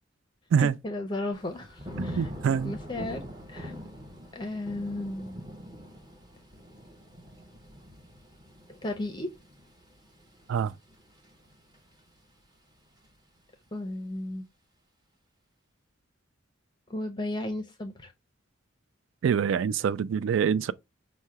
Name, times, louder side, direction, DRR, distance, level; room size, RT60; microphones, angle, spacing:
voice 1, 0.6-2.3 2.6-3.2 3.5-3.7 4.3-5.4 8.7-9.3 13.7-14.5 16.9-18.1, left 2 dB, 20° left, 0.5 m, -34 dB
Thunder / Rain, 1.3-12.3 12.7-13.1, equal, 20° right, 0.9 m, -44 dB
voice 2, 2.0-2.7 10.5-10.7 19.2-20.7, right 7 dB, 75° right, 0.3 m, -25 dB
5.5 x 2.1 x 4.6 m
head